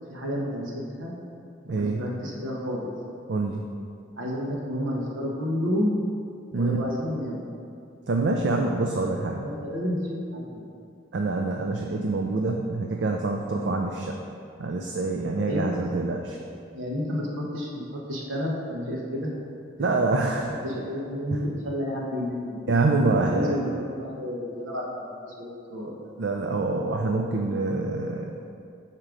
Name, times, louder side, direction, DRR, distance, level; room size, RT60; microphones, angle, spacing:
voice 1, 0.1-0.7 1.0-1.1 1.8-2.9 4.2-6.0 6.5-7.5 9.4-10.6 15.5-15.8 16.7-19.3 19.8-20.3 20.6-22.7 23.1-25.9, equal, 85° right, -3 dB, 1.2 m, -30 dB
voice 2, 1.7-2.0 3.3-3.6 6.5-6.8 8.1-9.4 11.1-14.2 14.6-16.4 19.8-20.5 22.7-23.6 26.2-28.3, right 3 dB, 60° right, 2 dB, 0.4 m, -26 dB
5.0 x 4.4 x 6.0 m, 2.4 s
head